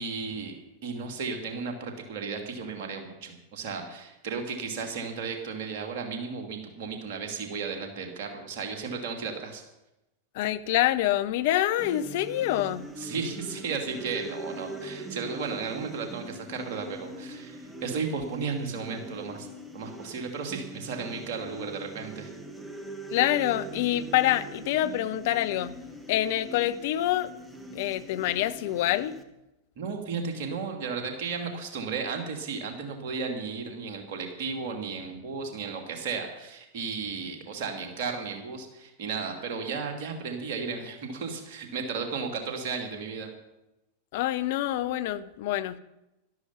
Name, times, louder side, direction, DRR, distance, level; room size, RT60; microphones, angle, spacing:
voice 1, 0.0-9.6 13.0-19.5 19.7-22.3 29.8-43.3, right 5 dB, 50° right, 4 dB, 2.6 m, -34 dB
voice 2, 10.3-12.9 23.1-25.7 26.1-27.3 27.7-29.2 44.1-45.8, left 14 dB, 50° left, 12 dB, 0.7 m, -26 dB
sound 1, 11.8-29.2, right 2 dB, 10° right, 1.6 m, -42 dB
12.5 x 12.5 x 5.7 m, 0.92 s
figure-of-eight pair, 90°, 0 cm